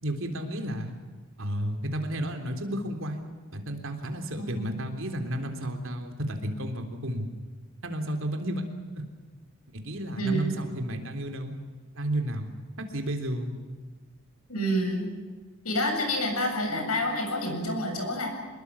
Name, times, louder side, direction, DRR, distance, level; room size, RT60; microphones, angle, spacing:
voice 1, 0.0-0.9 1.4-3.2 3.5-7.3 7.8-8.6 8.9-9.1 9.7-11.5 11.9-12.5 12.8-13.6, right 1 dB, 60° right, 5 dB, 3.5 m, -32 dB
voice 2, 4.4-4.7 10.2-10.5 14.5-15.1 15.6-18.3, equal, 85° left, 3 dB, 7.6 m, -28 dB
26.5 x 21.5 x 7.2 m, 1.4 s
head